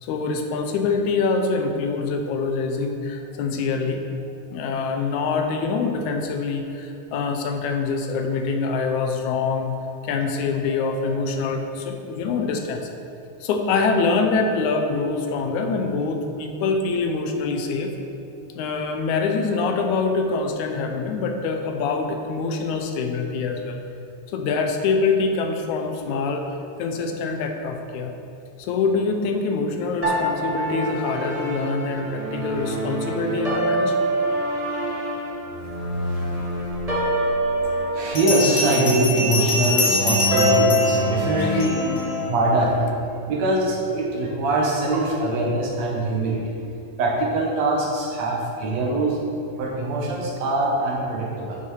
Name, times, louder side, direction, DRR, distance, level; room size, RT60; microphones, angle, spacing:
voice 1, 0.0-4.0 4.5-9.7 10.0-12.9 13.4-18.0 18.5-23.8 24.3-26.5 26.8-28.1 28.6-34.0 37.9-38.0 41.4-41.7, left 4 dB, 80° left, 4 dB, 2.0 m, -25 dB
sound 1, 30.0-42.2, equal, 35° right, 0.6 m, -25 dB
voice 2, 37.6-41.8 42.3-42.9 43.3-46.6 47.0-49.2 49.6-51.6, right 2 dB, 65° right, -2 dB, 2.2 m, -23 dB
Bell, 38.1-42.0, left 2 dB, 45° left, 1.6 m, -25 dB
8.6 x 6.1 x 4.6 m, 2.7 s
omnidirectional pair, 3.5 m